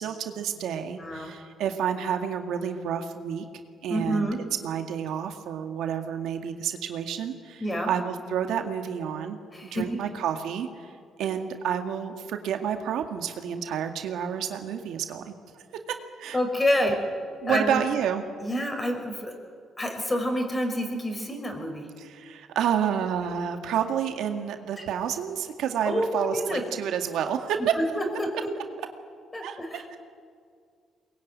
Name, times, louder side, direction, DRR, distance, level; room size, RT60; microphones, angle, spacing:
voice 1, 0.0-3.5 3.8-4.3 4.6-10.9 11.2-15.3 16.2-16.4 17.4-18.2 22.0-27.7 29.4-30.0, right 8 dB, 80° right, 5 dB, 2.0 m, -29 dB
voice 2, 1.0-1.3 3.9-4.4 7.6-7.9 9.5-10.0 16.3-17.0 17.5-17.8 18.4-19.3 19.8-21.9 25.8-26.6 27.7-28.5 29.3-30.0, equal, 20° left, 4 dB, 5.9 m, -28 dB
22.5 x 21.5 x 9.6 m, 2.1 s
cardioid pair, 90°, 0 cm